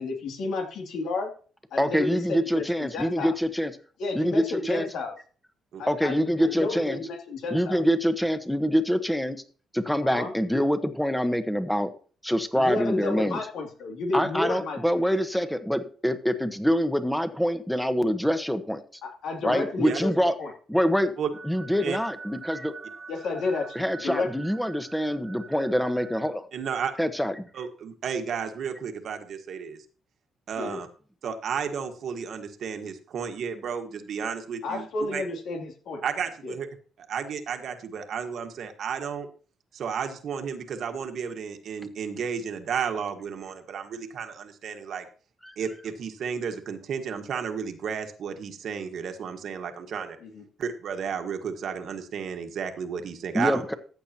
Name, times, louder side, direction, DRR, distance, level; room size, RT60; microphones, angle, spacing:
voice 1, 0.0-1.3 1.7-3.3 4.0-5.1 5.8-7.8 10.0-10.3 12.5-14.8 19.0-20.1 20.4-20.5 23.1-24.3 30.6-30.8 34.6-36.0 36.4-36.5 50.2-50.4, left 3 dB, 75° left, 1 dB, 2.7 m, -31 dB
voice 2, 1.8-3.7 4.1-4.9 5.9-7.0 7.5-9.4 9.7-11.9 12.2-13.4 14.1-18.8 19.4-20.3 20.7-21.1 21.4-22.7 23.7-26.5 27.0-27.5 45.4-45.5 53.3-53.7, equal, 5° left, 10 dB, 1.2 m, -25 dB
sound 1, 21.3-26.3, right 5 dB, 35° right, 1.1 m, -45 dB
voice 3, 26.5-26.9 27.5-29.8 30.5-30.9 31.2-35.2 36.0-36.7 37.1-39.3 39.7-45.1 45.6-50.2 50.6-53.7, right 7 dB, 65° right, 6 dB, 1.5 m, -32 dB
14.5 x 8.3 x 2.9 m, 0.40 s
cardioid pair, 90°, 0 cm